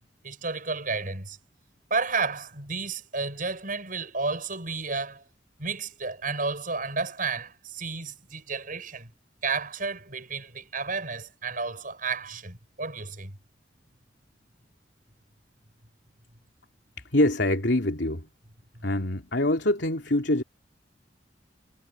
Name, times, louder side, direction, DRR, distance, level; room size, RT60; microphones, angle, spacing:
voice 1, 0.2-1.4 1.9-5.2 5.6-9.1 9.4-13.3, right 4 dB, 50° right, 7.1 m, -32 dB
voice 2, 17.1-18.3 18.8-20.4, left 1 dB, 75° left, 3.1 m, -24 dB
head